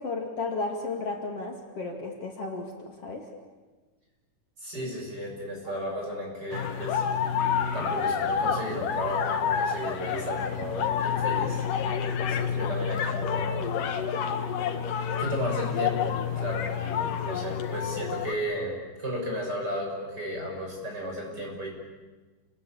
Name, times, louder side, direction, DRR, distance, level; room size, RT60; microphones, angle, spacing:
voice 1, 0.0-3.3, left 3 dB, 50° left, 1 dB, 3.4 m, -33 dB
voice 2, 4.6-7.0 7.7-11.6 12.3-13.7 15.2-18.7 19.0-21.7, equal, 30° right, 0 dB, 7.2 m, -34 dB
sound 1, 6.5-18.3, left 7 dB, 80° left, 3.2 m, -29 dB
29.5 x 21.0 x 8.8 m, 1.3 s
omnidirectional pair, 3.7 m